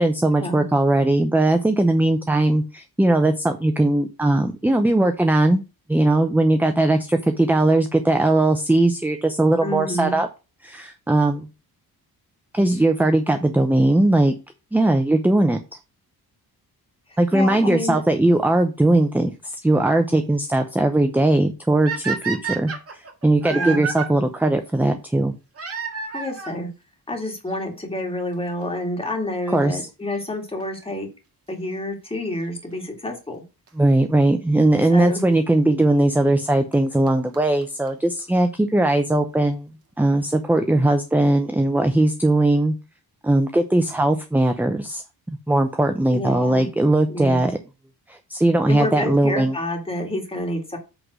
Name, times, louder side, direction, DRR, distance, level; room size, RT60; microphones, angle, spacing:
voice 1, 0.0-5.6 5.9-10.3 10.6-11.5 12.5-14.3 14.7-15.6 17.2-25.3 29.5-29.9 33.8-39.7 40.0-42.7 43.2-45.0 45.3-47.5 48.1-49.6, right 2 dB, 5° right, 7 dB, 0.6 m, -19 dB
voice 2, 9.6-10.2 17.1-18.0 23.5-23.8 26.1-26.7 27.1-31.1 31.5-33.4 34.8-35.2 46.1-46.7 47.1-47.4 48.7-50.8, left 1 dB, 15° left, 2 dB, 2.2 m, -28 dB
sound 1, 21.8-24.1 25.5-26.6 27.5-27.6 28.3-28.4 28.6-28.7 30.6-30.8 33.7-33.8 34.8-34.9 36.3-36.4 36.7-36.8 37.1-37.2 37.3-37.4 37.6-37.7 37.9-38.0 38.2-38.3, right 5 dB, 35° right, 1.7 m, -29 dB
8.0 x 3.9 x 6.0 m, 0.29 s
wide cardioid pair, 150°, 38 cm